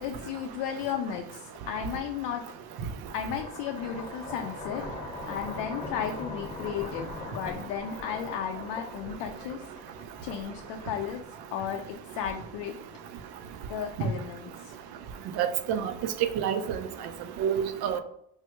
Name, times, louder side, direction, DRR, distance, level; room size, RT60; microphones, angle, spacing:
voice 1, 0.0-2.4 3.1-4.8 5.3-9.7 10.2-11.2 11.5-12.7 13.7-14.8, left 8 dB, 70° left, 0.5 m, -34 dB
sound 1, 3.2-11.5, left 2 dB, 15° left, 1.0 m, -41 dB
voice 2, 15.4-15.9 16.2-16.8 17.4-18.0, right 9 dB, 60° right, 0.5 m, -27 dB
3.2 x 2.3 x 2.9 m
hypercardioid pair, 65°, 45 cm